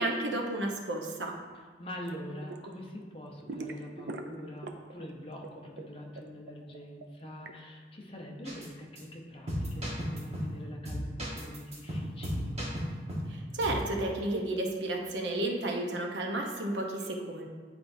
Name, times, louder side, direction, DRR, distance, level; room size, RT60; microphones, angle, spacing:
voice 1, 0.0-1.3 13.3-17.5, right 1 dB, 90° right, 1 dB, 0.9 m, -32 dB
voice 2, 1.8-12.6, equal, 30° left, 0 dB, 0.8 m, -44 dB
sound 1, 2.0-2.7 3.0-5.0 5.3-7.5, right 3 dB, 70° right, 0.5 m, -42 dB
sound 2, 8.5-8.7 9.0-9.1 9.5-10.6 10.9-13.3 13.6-13.9, equal, 35° right, 1.3 m, -34 dB
9.6 x 4.3 x 2.7 m, 1.5 s
head